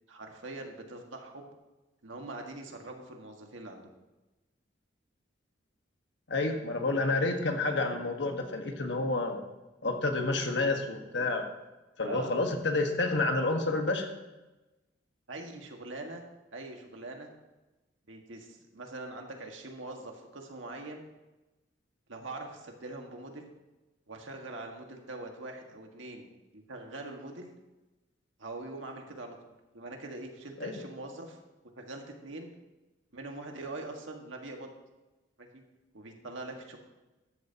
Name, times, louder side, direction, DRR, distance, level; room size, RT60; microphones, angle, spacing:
voice 1, 0.1-1.5 2.0-3.9 12.0-12.4 15.3-16.2 16.5-17.3 18.1-21.0 22.1-23.5 24.1-26.3 26.5-27.5 28.4-29.4 29.7-31.4 31.8-32.5 33.1-34.7 35.4-35.6 35.9-36.8, right 2 dB, 90° right, 2 dB, 1.7 m, -43 dB
voice 2, 6.3-9.4 9.8-11.5 12.0-14.1 30.6-30.8, left 2 dB, 65° left, 4 dB, 1.5 m, -29 dB
14.0 x 10.5 x 2.9 m, 1.1 s
head